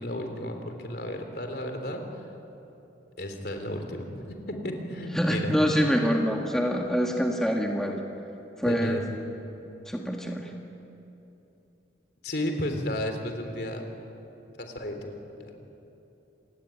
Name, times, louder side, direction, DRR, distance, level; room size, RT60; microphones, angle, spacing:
voice 1, 0.0-2.0 3.2-5.5 8.6-9.0 12.2-13.8 14.6-15.1 15.4-15.6, left 1 dB, 60° left, 5 dB, 3.5 m, -33 dB
voice 2, 5.1-8.0 8.6-9.0 9.9-10.5, equal, 5° left, 0 dB, 1.8 m, -25 dB
27.5 x 19.5 x 9.4 m, 2.9 s
head